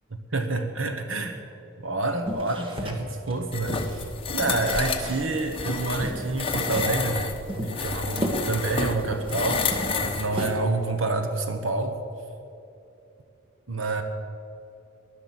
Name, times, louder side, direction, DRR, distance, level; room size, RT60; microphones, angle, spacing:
voice 1, 0.3-1.4 1.8-4.1 4.3-12.0 13.7-14.0, right 2 dB, 70° right, 7 dB, 1.2 m, -28 dB
sound 1, 2.2-4.0 4.5-5.4 5.7-5.8 6.0-7.0 7.5-9.4 9.7-10.9, equal, 25° right, 1.6 m, -34 dB
sound 2, 3.5-10.5, left 4 dB, 25° left, 1.0 m, -30 dB
19.5 x 11.5 x 6.0 m, 2.9 s
head